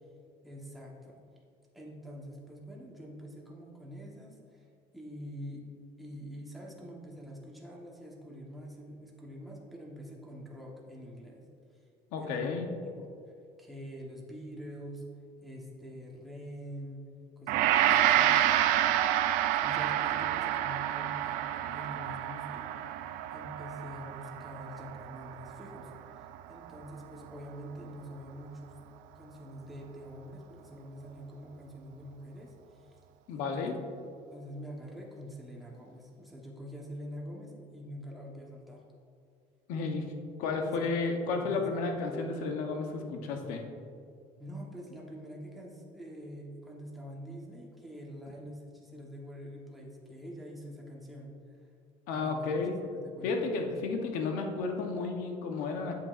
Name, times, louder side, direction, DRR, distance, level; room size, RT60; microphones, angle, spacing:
voice 1, 0.4-1.2 1.7-4.7 4.9-5.7 6.0-11.5 12.2-12.5 12.9-13.1 13.6-15.0 15.4-17.1 17.4-18.4 19.6-23.0 23.3-28.8 29.1-33.0 33.3-33.8 34.3-38.8 40.5-41.7 44.4-51.7 52.1-52.5 52.8-53.8, equal, ahead, -3 dB, 1.1 m, -45 dB
voice 2, 12.1-12.7 33.3-33.8 39.7-40.1 40.4-43.6 52.1-52.7 53.2-56.0, left 4 dB, 80° left, 3 dB, 0.9 m, -32 dB
Gong, 17.5-26.7, right 12 dB, 80° right, 0.4 m, -29 dB
8.2 x 7.5 x 2.5 m, 2.4 s
cardioid pair, 155°, 14 cm